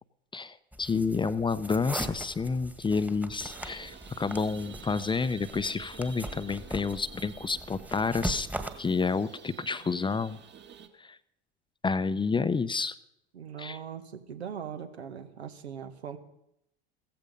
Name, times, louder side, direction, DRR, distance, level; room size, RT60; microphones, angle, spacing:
voice 1, 0.3-8.5 8.8-10.4 11.0-11.2 11.8-13.0 13.6-13.8, left 4 dB, 15° left, 15 dB, 0.7 m, -29 dB
sound 1, 0.7-8.7, right 1 dB, 5° right, 1.7 m, -40 dB
sound 2, 3.3-10.9, right 6 dB, 35° right, 2.0 m, -49 dB
voice 2, 13.3-16.2, right 8 dB, 80° right, 8 dB, 1.8 m, -40 dB
16.0 x 14.5 x 5.4 m, 0.78 s
figure-of-eight pair, 75°, 32 cm